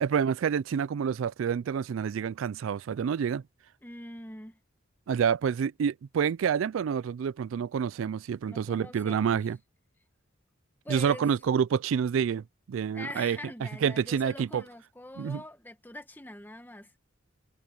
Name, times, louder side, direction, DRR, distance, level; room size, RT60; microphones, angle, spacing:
voice 1, 0.0-3.4 5.1-9.6 10.9-13.4 13.8-14.6 15.2-15.4, right 7 dB, 85° right, 0.3 m, -28 dB
voice 2, 3.8-4.6 8.5-9.4 10.8-11.3 12.9-16.9, left 1 dB, 10° left, 1.7 m, -43 dB
head